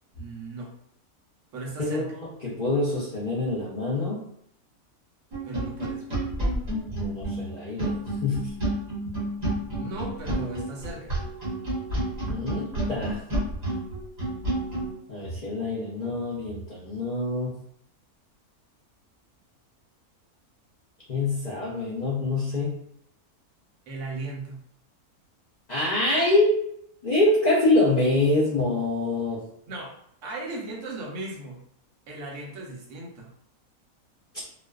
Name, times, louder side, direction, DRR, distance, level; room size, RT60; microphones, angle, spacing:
voice 1, 0.1-0.7 1.5-2.1 5.4-6.2 9.7-11.2 23.9-24.7 29.7-29.9 30.2-31.6 32.1-33.3, right 2 dB, 65° right, -1 dB, 0.9 m, -37 dB
voice 2, 1.8-4.3 6.9-8.5 12.3-13.2 15.1-17.6 21.1-22.8 25.7-26.6 27.0-29.4, left 2 dB, 75° left, -8 dB, 0.4 m, -25 dB
sound 1, 5.3-14.9, right 1 dB, 35° right, 0.9 m, -29 dB
2.4 x 2.3 x 2.3 m, 0.70 s
omnidirectional pair, 1.6 m